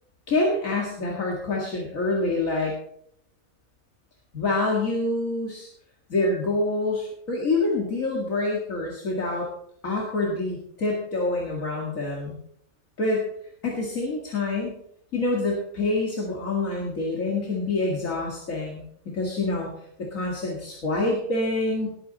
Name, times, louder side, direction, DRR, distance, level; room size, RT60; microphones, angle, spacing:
voice 1, 0.3-2.7 4.3-5.7 6.1-9.5 9.8-12.4 13.0-13.3 13.6-14.8 15.1-18.8 19.1-19.7 20.0-21.9, left 2 dB, 70° left, -2 dB, 2.5 m, -26 dB
19.0 x 8.7 x 4.1 m, 0.68 s
omnidirectional pair, 1.5 m